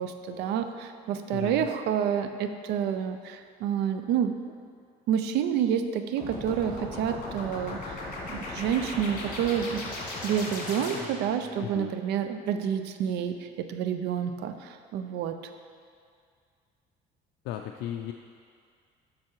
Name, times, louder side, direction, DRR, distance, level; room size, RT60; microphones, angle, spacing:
voice 1, 0.0-4.3 5.1-7.9 8.3-9.9 10.2-15.4, right 8 dB, 85° right, 8 dB, 0.5 m, -29 dB
voice 2, 1.3-1.7 11.6-11.9 17.4-18.1, left 11 dB, 90° left, 3 dB, 0.4 m, -35 dB
sound 1, 6.2-11.4, left 2 dB, 50° left, 2.0 m, -37 dB
7.4 x 6.0 x 4.6 m, 2.2 s
cardioid pair, 110°, 17 cm